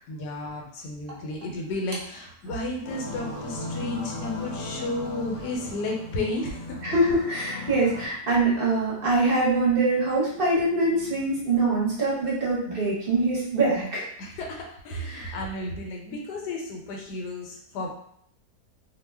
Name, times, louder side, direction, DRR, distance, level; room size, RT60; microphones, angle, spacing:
voice 1, 0.1-6.8 14.2-17.9, left 2 dB, 85° left, 0 dB, 1.3 m, -33 dB
sound 1, 2.8-8.1, left 3 dB, 65° left, 0.9 m, -36 dB
voice 2, 6.8-14.1 15.1-15.4, right 2 dB, 45° right, -5 dB, 0.8 m, -24 dB
2.7 x 2.1 x 3.3 m, 0.67 s
omnidirectional pair, 1.8 m